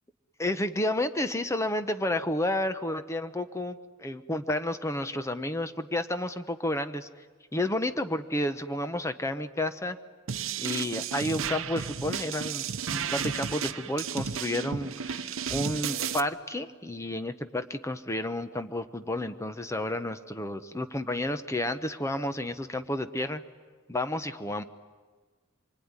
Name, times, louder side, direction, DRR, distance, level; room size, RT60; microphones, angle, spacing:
voice 1, 0.4-7.1 7.5-10.0 10.6-12.6 12.9-23.4 23.9-24.6, left 1 dB, 15° left, 10 dB, 0.8 m, -31 dB
sound 1, 10.3-16.2, right 7 dB, 65° right, 0.8 m, -33 dB
25.5 x 24.0 x 9.7 m, 1.5 s
head